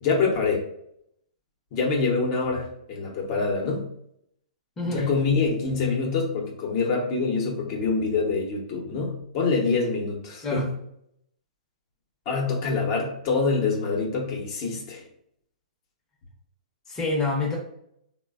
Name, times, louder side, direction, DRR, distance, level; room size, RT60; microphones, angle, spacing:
voice 1, 0.0-0.6 1.7-3.9 4.9-10.6 12.3-15.1, left 4 dB, 45° left, -1 dB, 0.8 m, -25 dB
voice 2, 16.9-17.6, left 3 dB, 15° left, -3 dB, 0.7 m, -26 dB
3.2 x 2.2 x 2.3 m, 0.73 s
hypercardioid pair, 125°, 4 cm